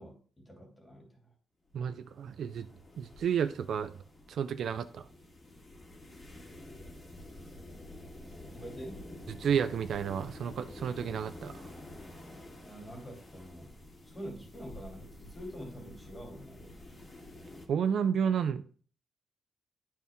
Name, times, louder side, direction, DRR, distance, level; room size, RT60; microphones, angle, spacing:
voice 1, 0.0-1.3 8.4-9.1 12.4-13.8 14.0-16.7, equal, 15° left, 1 dB, 2.5 m, -46 dB
sound 1, 1.7-17.7, left 1 dB, 30° left, 2.1 m, -49 dB
voice 2, 1.7-2.7 3.0-3.9 4.3-5.1 9.3-11.6 17.7-18.6, right 7 dB, 60° right, 10 dB, 0.4 m, -31 dB
10.5 x 4.3 x 3.5 m, 0.44 s
cardioid pair, 150°, 0 cm